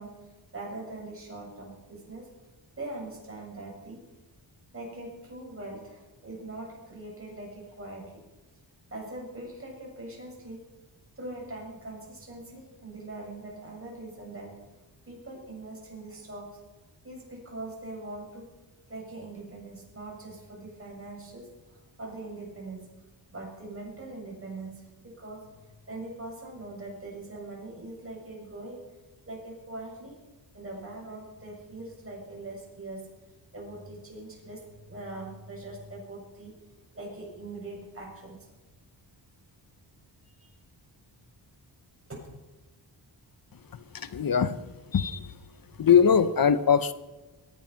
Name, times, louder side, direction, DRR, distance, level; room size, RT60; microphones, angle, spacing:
voice 1, 0.0-2.3 2.8-4.1 4.7-8.2 8.9-10.7 11.2-14.6 15.1-16.6 17.0-18.6 18.9-22.9 23.3-28.9 29.3-30.2 30.5-33.2 33.5-36.6 36.9-38.5 40.2-40.5 42.1-42.3 45.7-45.9, right 2 dB, 30° right, -2 dB, 7.2 m, -42 dB
voice 2, 43.9-44.6 44.9-45.4 45.8-46.9, left 7 dB, 50° left, 13 dB, 0.9 m, -22 dB
22.5 x 10.0 x 5.8 m, 1.1 s
wide cardioid pair, 100°, 45 cm